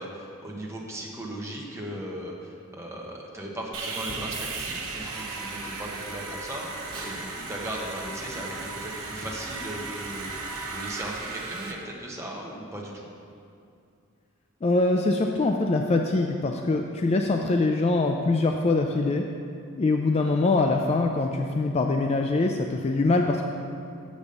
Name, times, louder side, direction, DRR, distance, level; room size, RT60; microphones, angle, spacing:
voice 1, 0.0-13.1, right 1 dB, 15° right, -2 dB, 1.0 m, -37 dB
Sawing, 3.7-11.7, right 3 dB, 80° right, 1.0 m, -36 dB
voice 2, 14.6-19.2 19.8-23.4, left 3 dB, 30° left, 3 dB, 0.3 m, -23 dB
7.1 x 5.2 x 6.6 m, 2.5 s
head